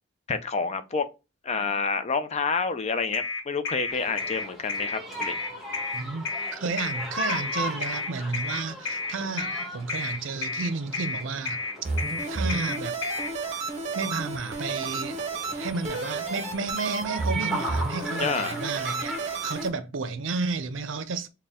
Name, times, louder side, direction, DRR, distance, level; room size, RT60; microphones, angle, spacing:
voice 1, 0.3-1.1 1.4-5.4 18.2-18.6, left 5 dB, 35° left, 0.4 m, -28 dB
sound 1, 3.1-13.3, left 4 dB, 75° left, 0.8 m, -31 dB
sound 2, 3.9-19.6, right 1 dB, ahead, 1.2 m, -38 dB
voice 2, 5.9-11.6 12.3-13.0 13.9-15.2 15.5-21.3, right 4 dB, 70° right, 0.5 m, -32 dB
sound 3, 11.8-19.7, right 3 dB, 35° right, 0.8 m, -32 dB
4.2 x 2.2 x 3.5 m
head